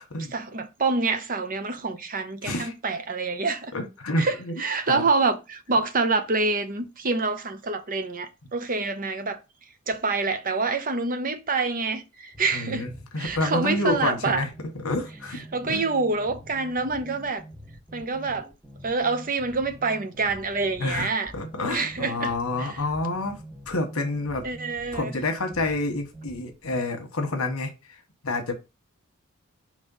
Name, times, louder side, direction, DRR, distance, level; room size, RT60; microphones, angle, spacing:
voice 1, 0.3-3.7 4.2-9.4 9.9-12.9 13.2-14.4 15.5-17.4 17.9-18.5 18.8-21.3 21.7-22.8 24.4-25.2, right 3 dB, 40° right, 0.8 m, -27 dB
voice 2, 2.4-2.7 3.7-4.5 4.8-5.0 12.5-14.5 14.8-15.4 15.7-15.9 20.8-23.4 23.7-24.4 24.9-27.7 28.2-28.5, left 2 dB, 70° left, 1.4 m, -28 dB
sound 1, 12.3-26.8, right 1 dB, 5° left, 1.7 m, -45 dB
5.4 x 3.2 x 5.5 m
head